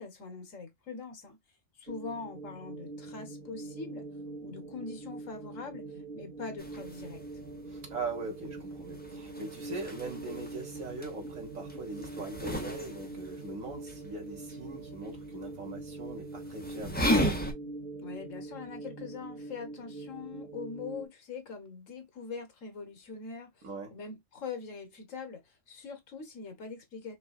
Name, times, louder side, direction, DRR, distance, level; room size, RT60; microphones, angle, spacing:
voice 1, 0.0-1.4 1.8-4.0 4.4-5.9 6.1-7.2 18.0-23.6 23.9-27.2, left 5 dB, 75° left, 1.6 m, -42 dB
sound 1, 1.9-21.1, right 3 dB, 45° right, 1.0 m, -43 dB
sound 2, 6.6-17.5, equal, 10° left, 0.9 m, -36 dB
voice 2, 7.7-17.2 23.6-24.0, right 3 dB, 85° right, 2.0 m, -41 dB
5.3 x 2.6 x 2.4 m
omnidirectional pair, 1.3 m